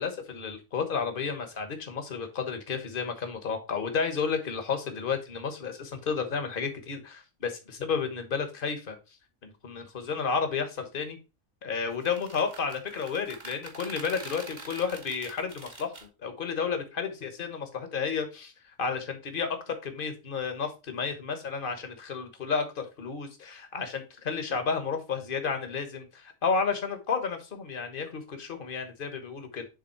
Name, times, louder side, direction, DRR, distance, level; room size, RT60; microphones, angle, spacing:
voice 1, 0.0-9.0 9.4-11.2 11.6-18.5 18.8-29.7, left 5 dB, 40° left, 1.3 m, -32 dB
sound 1, 11.9-16.1, right 3 dB, 35° right, 1.2 m, -45 dB
7.2 x 3.6 x 4.3 m
omnidirectional pair, 1.5 m